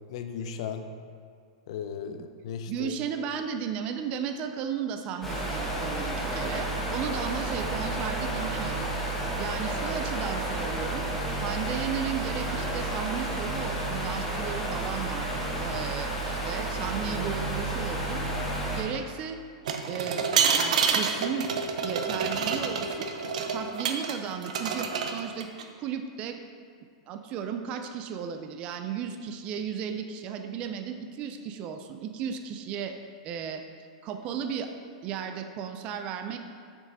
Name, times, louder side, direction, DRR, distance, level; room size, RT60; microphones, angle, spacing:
voice 1, 0.1-0.9 1.7-2.9 15.7-15.8, left 7 dB, 55° left, 8 dB, 0.6 m, -36 dB
voice 2, 2.7-11.1 11.4-15.3 15.6-18.2 18.7-19.4 19.9-20.2 20.5-21.5 21.8-23.1 23.5-25.5 25.8-26.4 27.1-33.0 33.2-33.6 34.0-34.7 35.0-36.4, right 7 dB, 30° right, 6 dB, 0.4 m, -35 dB
sound 1, 5.2-18.8, right 2 dB, 5° left, 1.1 m, -31 dB
sound 2, 19.6-24.1 24.4-25.6, right 6 dB, 75° right, 0.7 m, -27 dB
6.3 x 6.2 x 4.0 m, 2.2 s
supercardioid pair, 160°, 4 cm